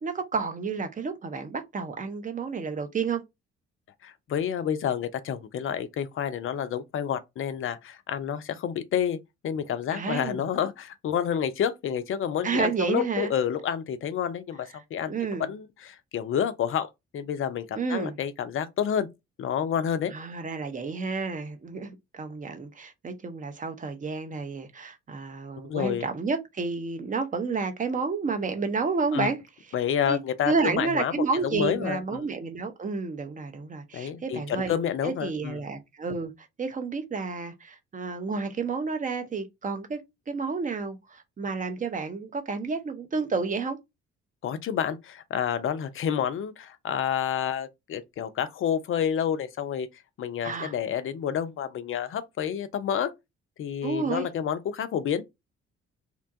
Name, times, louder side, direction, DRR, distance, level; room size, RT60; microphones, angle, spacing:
voice 1, 0.0-3.2 9.9-10.5 12.4-13.3 15.1-15.5 17.7-18.2 20.1-29.4 30.0-34.7 35.0-40.0 40.3-43.8 50.4-50.7 53.8-54.3, right 4 dB, 25° right, 0.6 m, -30 dB
voice 2, 4.0-9.2 9.4-15.1 15.4-19.1 19.4-20.1 25.6-26.1 29.1-29.3 29.7-32.2 33.9-35.6 44.4-49.9 50.2-53.1 53.6-55.2, left 8 dB, 40° left, 0.5 m, -29 dB
2.9 x 2.2 x 2.5 m
figure-of-eight pair, 40°, 34 cm